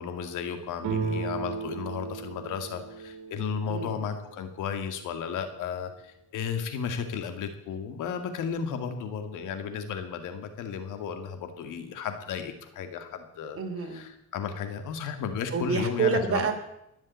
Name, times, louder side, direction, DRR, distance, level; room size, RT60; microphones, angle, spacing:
voice 1, 0.0-13.6 13.9-16.5, left 6 dB, 85° left, 7 dB, 2.3 m, -34 dB
sound 1, 0.8-4.4, right 5 dB, 85° right, 2.3 m, -35 dB
voice 2, 13.5-14.0 15.5-16.5, right 5 dB, 50° right, 5 dB, 3.2 m, -28 dB
21.5 x 7.5 x 8.6 m, 0.82 s
cardioid pair, 90°, 30 cm